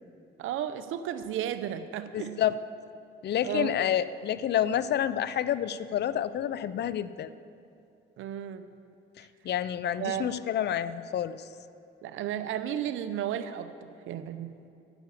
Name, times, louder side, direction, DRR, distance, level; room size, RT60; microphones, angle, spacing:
voice 1, 0.4-2.4 3.4-3.8 8.2-8.6 9.9-10.3 12.0-14.5, right 10 dB, 85° right, 11 dB, 0.7 m, -33 dB
voice 2, 2.1-2.6 3.2-7.3 9.2-11.4, left 10 dB, 60° left, 15 dB, 0.5 m, -29 dB
9.2 x 8.3 x 8.3 m, 2.6 s
cardioid pair, 90°, 20 cm